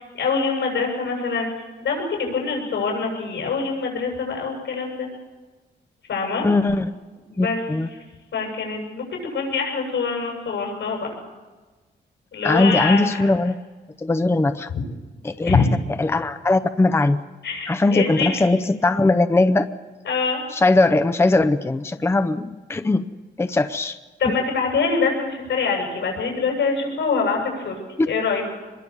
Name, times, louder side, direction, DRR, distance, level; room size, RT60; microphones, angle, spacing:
voice 1, 0.0-1.5 1.8-5.1 6.1-6.5 7.3-7.6 8.3-11.1 12.3-13.3 15.4-15.7 17.4-18.4 20.0-20.4 24.2-27.8 28.1-28.4, left 5 dB, 90° left, 1 dB, 7.5 m, -24 dB
voice 2, 6.4-6.9 7.4-7.9 12.4-13.5 14.0-14.7 15.2-15.6 16.0-17.2 17.7-19.7 20.5-23.1 23.4-24.0 28.0-28.1, left 2 dB, 15° left, 11 dB, 0.6 m, -20 dB
25.5 x 22.0 x 7.3 m, 1.3 s
wide cardioid pair, 145°, 19 cm